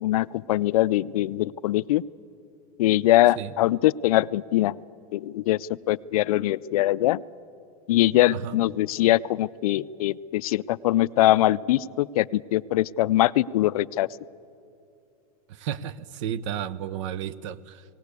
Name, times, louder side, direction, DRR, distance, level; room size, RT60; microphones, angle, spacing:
voice 1, 0.0-2.0 2.8-4.8 5.1-7.2 7.9-14.1, left 15 dB, 70° left, 19 dB, 0.4 m, -22 dB
voice 2, 15.5-17.8, right 9 dB, 50° right, 18 dB, 0.7 m, -33 dB
18.5 x 18.0 x 8.2 m, 2.6 s
supercardioid pair, 160°, 19 cm